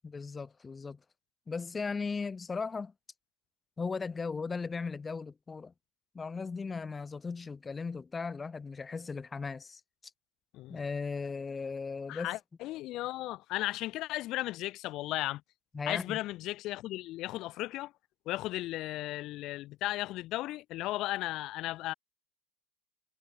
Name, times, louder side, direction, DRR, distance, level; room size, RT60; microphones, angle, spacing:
voice 1, 0.0-1.0 1.5-2.9 3.8-5.7 6.1-9.8 10.7-12.4 15.7-16.2, left 4 dB, 20° left, 2.3 m, -37 dB
voice 2, 12.1-15.4 15.9-17.9 18.3-21.9, left 17 dB, 55° left, 1.9 m, -35 dB
hypercardioid pair, 95°, 0 cm